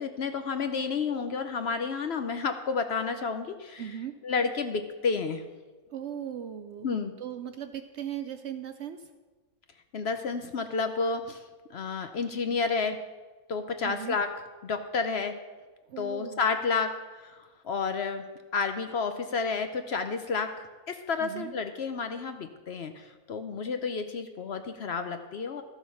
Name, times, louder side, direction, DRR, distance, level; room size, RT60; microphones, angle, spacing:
voice 1, 0.0-3.8 4.2-5.4 6.8-7.1 9.9-11.4 11.7-13.0 13.5-14.3 14.6-15.3 16.0-16.9 17.2-17.4 17.6-18.2 18.5-25.6, left 5 dB, 55° left, 7 dB, 0.9 m, -30 dB
voice 2, 3.8-4.1 5.9-9.0 13.8-14.2 15.9-16.5 21.2-21.5, right 9 dB, 65° right, 9 dB, 0.7 m, -38 dB
13.0 x 7.1 x 5.7 m, 1.3 s
omnidirectional pair, 1.5 m